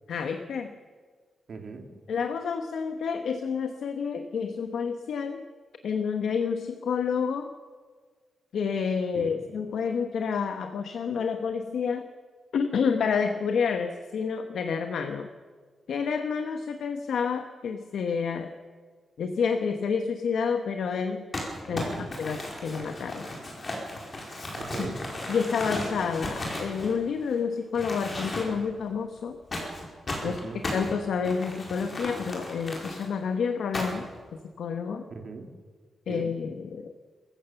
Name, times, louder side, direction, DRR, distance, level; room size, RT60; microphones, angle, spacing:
voice 1, 0.1-0.7 2.1-5.4 5.8-7.5 8.5-12.0 12.5-15.3 15.9-18.5 19.2-21.2 21.7-23.3 25.3-29.4 30.2-30.4 30.7-34.1 34.6-35.0 36.1-36.9, left 6 dB, 75° left, 7 dB, 1.1 m, -29 dB
voice 2, 1.5-1.9 9.1-9.4 21.7-22.1 24.5-25.0 30.2-30.6 35.1-35.5 36.1-36.3, right 4 dB, 50° right, 4 dB, 2.4 m, -39 dB
Crumpling crinkling, 21.3-27.4 27.7-28.7 29.5-33.0 33.7-34.2, left 1 dB, 30° left, 4.7 m, -35 dB
26.0 x 15.0 x 7.0 m, 1.6 s
wide cardioid pair, 170°, 0 cm